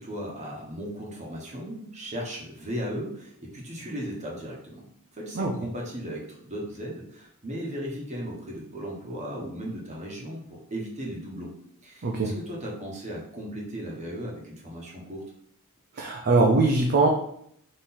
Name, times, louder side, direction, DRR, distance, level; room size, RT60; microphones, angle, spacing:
voice 1, 0.0-4.8 5.1-11.5 11.8-15.2, equal, 30° right, -2 dB, 1.1 m, -36 dB
voice 2, 16.0-17.1, right 3 dB, 50° right, 0 dB, 0.5 m, -21 dB
4.2 x 3.2 x 3.9 m, 0.69 s
head